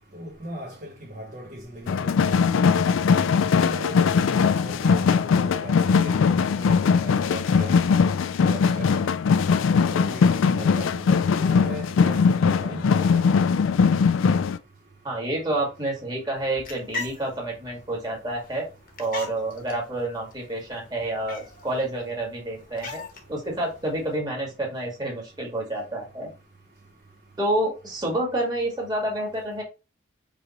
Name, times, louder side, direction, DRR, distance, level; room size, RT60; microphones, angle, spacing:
voice 1, 0.1-2.6 3.0-3.1 3.4-7.9 8.4-9.1 9.9-13.2, right 1 dB, 40° right, 0.9 m, -38 dB
sound 1, 1.9-14.6, left 5 dB, 75° left, 0.3 m, -20 dB
voice 2, 15.0-18.6 19.0-23.0 23.3-26.3 27.4-29.6, right 1 dB, 20° right, 1.7 m, -28 dB
sound 2, 16.3-24.2, left 3 dB, 45° left, 1.1 m, -41 dB
4.9 x 3.2 x 2.9 m
head